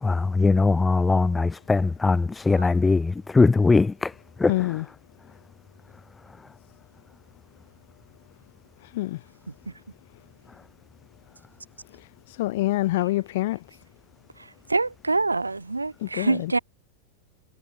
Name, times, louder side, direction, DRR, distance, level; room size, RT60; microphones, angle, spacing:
voice 1, 0.0-4.1 4.4-4.5, left 3 dB, 10° left, 2.2 m, -21 dB
voice 2, 4.5-4.9 8.8-9.3 11.9-13.6 16.0-16.5, left 17 dB, 55° left, 4.2 m, -27 dB
voice 3, 14.7-16.6, right 3 dB, 80° right, 4.5 m, -25 dB
figure-of-eight pair, 90°, 0 cm